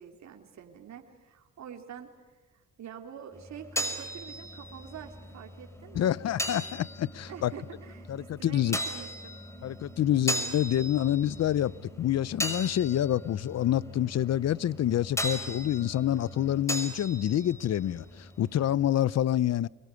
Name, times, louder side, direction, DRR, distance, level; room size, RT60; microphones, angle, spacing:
voice 1, 0.0-2.1 2.8-6.2 7.3-9.3, right 8 dB, 65° right, 3.3 m, -46 dB
sound 1, 3.3-18.9, equal, 10° left, 5.6 m, -38 dB
voice 2, 6.0-7.5 8.1-8.8 9.6-11.7 12.0-19.7, left 11 dB, 60° left, 0.8 m, -27 dB
25.5 x 22.0 x 9.8 m
cardioid pair, 90°, 30 cm